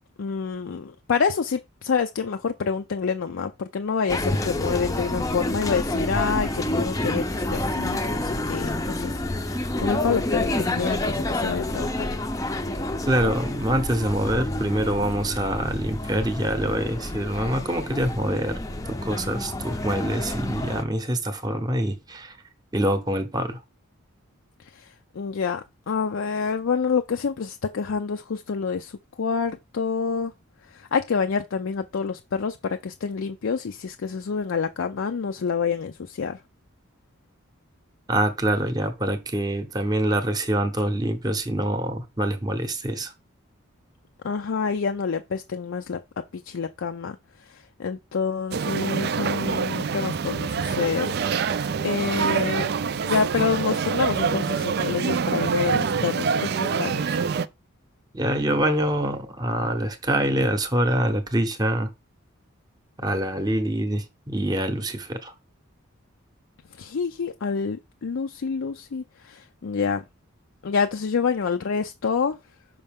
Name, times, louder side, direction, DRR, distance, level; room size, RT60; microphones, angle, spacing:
voice 1, 0.2-12.1 24.6-30.3 30.7-36.4 44.2-47.2 47.5-51.2 51.8-52.7 53.0-57.2 66.8-70.0 70.6-72.4, left 5 dB, 65° left, 0.4 m, -27 dB
sound 1, 4.1-20.8, left 1 dB, 15° left, 0.5 m, -28 dB
voice 2, 13.1-18.6 18.9-22.4 22.7-23.6 38.1-43.1 58.1-61.9 63.0-65.3, right 1 dB, 20° right, 0.8 m, -25 dB
sound 2, 48.5-57.5, right 6 dB, 50° right, 0.3 m, -26 dB
5.7 x 5.4 x 3.5 m
head